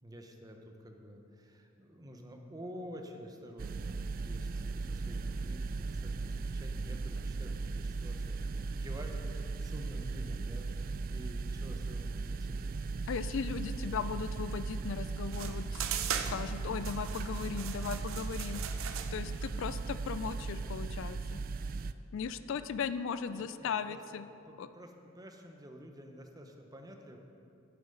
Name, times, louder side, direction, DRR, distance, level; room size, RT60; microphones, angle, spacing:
voice 1, 0.0-12.7 22.4-22.6 23.3-24.0 24.5-27.2, equal, 20° right, 3 dB, 0.8 m, -49 dB
sound 1, 3.6-21.9, right 3 dB, 45° right, 0.3 m, -37 dB
voice 2, 13.1-15.8 16.1-18.8 19.1-21.4 22.1-24.2 24.6-24.7, left 6 dB, 65° left, 12 dB, 0.3 m, -37 dB
sound 2, 15.3-20.4, right 8 dB, 80° right, 0.7 m, -39 dB
9.4 x 8.8 x 5.3 m, 2.7 s
head